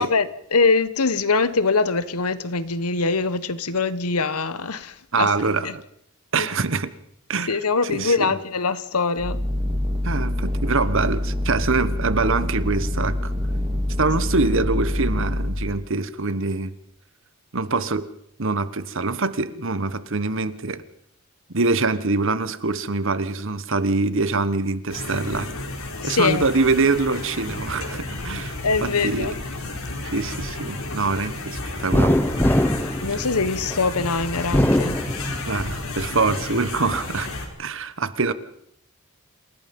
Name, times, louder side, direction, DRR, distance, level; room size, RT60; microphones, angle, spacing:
voice 1, 0.0-5.8 6.3-6.5 7.5-9.4 26.0-26.4 28.6-29.3 33.0-35.0, left 4 dB, 90° left, 1.3 m, -23 dB
voice 2, 5.1-5.8 6.3-6.9 7.3-7.6 7.8-8.3 10.0-13.3 14.0-16.7 17.5-18.1 18.4-20.8 21.5-25.5 26.0-29.3 30.0-32.2 35.5-37.3 37.6-38.3, right 3 dB, 60° right, 1.3 m, -24 dB
sound 1, 9.2-15.7, left 1 dB, 20° right, 2.1 m, -25 dB
sound 2, 24.9-37.5, left 2 dB, 70° left, 4.4 m, -32 dB
sound 3, 31.9-33.8 34.4-35.7 36.2-37.1, left 1 dB, 10° left, 0.8 m, -22 dB
28.0 x 17.5 x 5.4 m
head